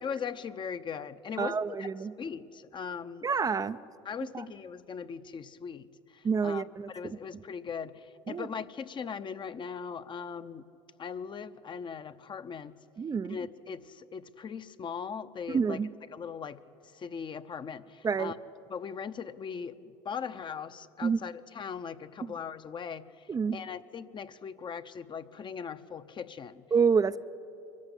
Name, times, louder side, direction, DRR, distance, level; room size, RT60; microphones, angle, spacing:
voice 1, 0.0-1.9 2.2-3.3 3.6-3.7 4.0-5.9 6.1-10.6 11.0-12.8 13.3-15.8 16.1-16.6 16.9-18.3 18.7-19.8 20.0-23.1 23.5-26.6, left 6 dB, 35° left, 11 dB, 0.9 m, -39 dB
voice 2, 1.4-2.1 3.2-3.8 4.3-4.4 6.2-7.2 8.3-8.5 13.0-13.4 15.5-15.9 18.0-18.3 21.0-21.2 22.2-22.3 23.3-23.6 26.7-27.2, right 5 dB, 25° right, 11 dB, 0.5 m, -28 dB
24.0 x 14.0 x 9.9 m, 2.8 s
hypercardioid pair, 75°, 14 cm